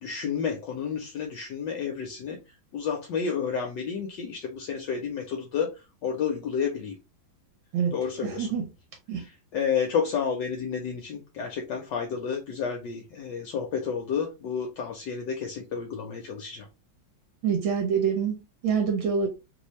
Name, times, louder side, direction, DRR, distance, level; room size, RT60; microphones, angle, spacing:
voice 1, 0.0-2.4 2.7-5.7 6.0-6.9 7.9-8.5 9.2-16.7, left 6 dB, 70° left, 1.1 m, -30 dB
voice 2, 8.2-8.6 9.1-9.2 17.4-19.3, right 6 dB, 75° right, 1.6 m, -26 dB
3.3 x 2.6 x 3.0 m
omnidirectional pair, 2.3 m